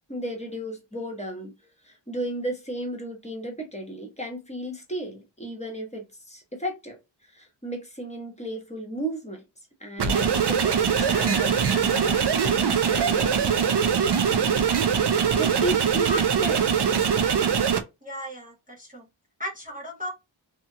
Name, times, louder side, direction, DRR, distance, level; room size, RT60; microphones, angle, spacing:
voice 1, 0.1-1.5 1.8-7.0 7.2-9.4 9.8-13.7 15.3-16.6, right 1 dB, 15° left, 1.0 m, -34 dB
sound 1, 10.0-17.8, right 7 dB, 60° right, 0.6 m, -22 dB
sound 2, 10.9-13.7, left 5 dB, 60° left, 0.8 m, -42 dB
voice 2, 18.0-19.1 19.4-20.1, left 1 dB, 20° right, 0.7 m, -35 dB
2.9 x 2.3 x 2.6 m
wide cardioid pair, 70°, 47 cm